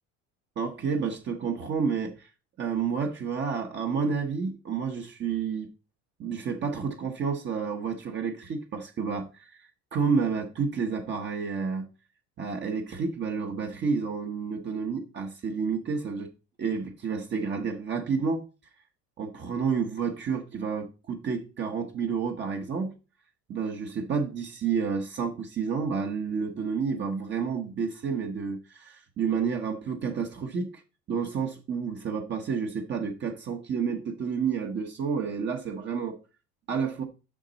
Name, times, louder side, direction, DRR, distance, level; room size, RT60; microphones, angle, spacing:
voice 1, 0.6-2.3 2.6-5.7 6.2-11.9 12.4-16.3 16.6-18.4 19.2-22.9 23.5-30.8 31.1-36.2 36.7-37.0, right 5 dB, 35° right, 1.1 m, -30 dB
7.3 x 5.9 x 4.0 m
cardioid pair, 135°, 30 cm